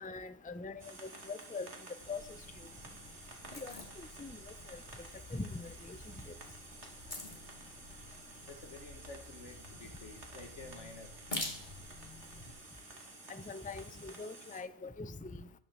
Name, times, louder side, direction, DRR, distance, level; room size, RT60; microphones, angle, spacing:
voice 1, 0.0-1.7 2.1-2.2 3.5-3.8 4.2-4.4 4.7-4.8 5.3-6.0 13.3-15.4, left 3 dB, 10° left, 13 dB, 0.6 m, -43 dB
voice 2, 0.7-1.3 2.7-3.5 8.5-11.1, left 3 dB, 90° left, 6 dB, 2.3 m, -52 dB
sound 1, 0.8-14.6, right 2 dB, 75° right, 2.6 m, -52 dB
sound 2, 2.0-12.5, left 2 dB, 40° left, 2.7 m, -48 dB
21.5 x 7.3 x 7.5 m, 0.68 s
omnidirectional pair, 1.2 m